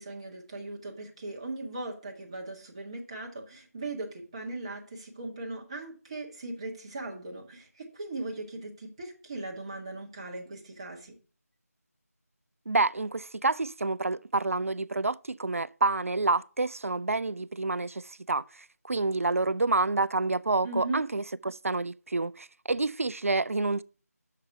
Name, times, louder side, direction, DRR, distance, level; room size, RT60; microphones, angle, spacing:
voice 1, 0.0-11.1 20.6-21.0, right 2 dB, 20° right, 1.1 m, -38 dB
voice 2, 12.7-18.4 18.8-23.8, right 3 dB, 55° right, 0.3 m, -28 dB
6.6 x 5.9 x 5.7 m
figure-of-eight pair, 165°, 9 cm